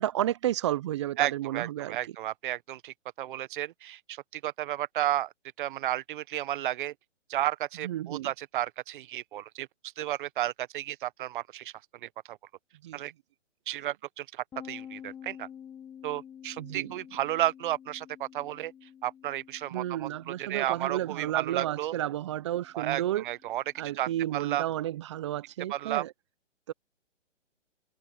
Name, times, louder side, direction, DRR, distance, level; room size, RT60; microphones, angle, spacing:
voice 1, 0.0-2.0 7.8-8.3 12.8-13.0 16.6-16.9 19.7-23.2 23.8-26.1 26.7-26.8, right 13 dB, 25° right, 0.5 m, -32 dB
voice 2, 1.2-5.3 5.6-6.9 7.3-9.7 10.0-11.7 12.0-12.4 12.9-13.1 13.7-15.5 16.0-18.7 19.0-21.9 22.7-23.6 23.9-24.7 25.7-26.0, right 13 dB, 45° right, 1.2 m, -33 dB
sound 1, 14.5-24.0, left 9 dB, 10° left, 0.9 m, -50 dB
hypercardioid pair, 140°, 37 cm